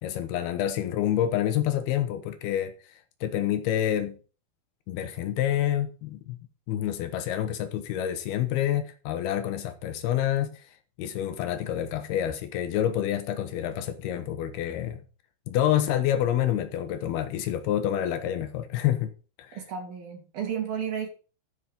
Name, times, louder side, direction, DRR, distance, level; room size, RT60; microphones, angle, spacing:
voice 1, 0.0-2.7 3.2-4.2 4.9-6.4 6.7-10.6 11.0-15.0 15.5-19.1 19.4-19.6, left 11 dB, 80° left, 2.9 m, -28 dB
voice 2, 19.5-21.1, right 8 dB, 65° right, 4.4 m, -32 dB
12.5 x 5.7 x 5.2 m
omnidirectional pair, 4.5 m